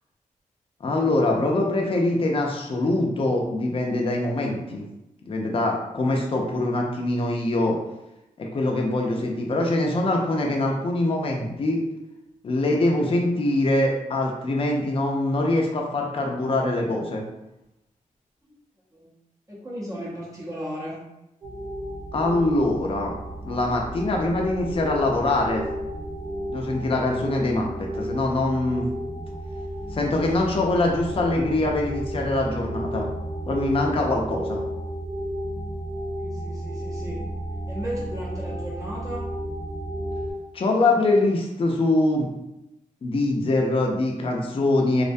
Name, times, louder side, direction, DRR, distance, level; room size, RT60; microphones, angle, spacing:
voice 1, 0.8-4.9 5.3-7.8 8.4-11.8 12.4-17.2 22.1-23.1 23.4-25.6 26.5-28.9 29.9-33.1 33.5-34.6 40.5-42.3 43.0-45.0, left 2 dB, 40° left, 0 dB, 0.4 m, -23 dB
voice 2, 19.5-21.0 36.2-37.2 37.7-39.3, equal, 25° right, -6 dB, 0.7 m, -35 dB
sound 1, 21.4-40.3, equal, 50° right, 0.9 m, -33 dB
2.4 x 2.2 x 2.5 m, 0.90 s
cardioid pair, 85°, 14 cm